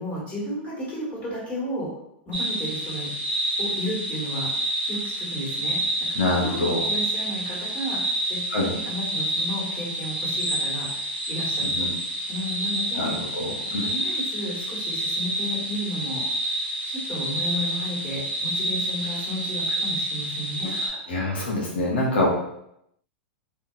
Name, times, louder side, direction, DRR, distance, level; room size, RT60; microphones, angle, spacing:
voice 1, 0.0-1.9 2.2-3.1 3.6-4.5 4.9-5.8 6.1-11.9 12.3-13.1 13.8-20.7, left 1 dB, 25° left, -5 dB, 1.4 m, -33 dB
sound 1, 2.3-20.9, right 1 dB, 85° right, 1.0 m, -28 dB
voice 2, 6.1-6.8 8.5-8.7 11.7-11.9 12.9-13.8 21.1-22.3, left 2 dB, 80° left, -3 dB, 0.7 m, -25 dB
2.7 x 2.3 x 2.4 m, 0.77 s
hypercardioid pair, 105°, 6 cm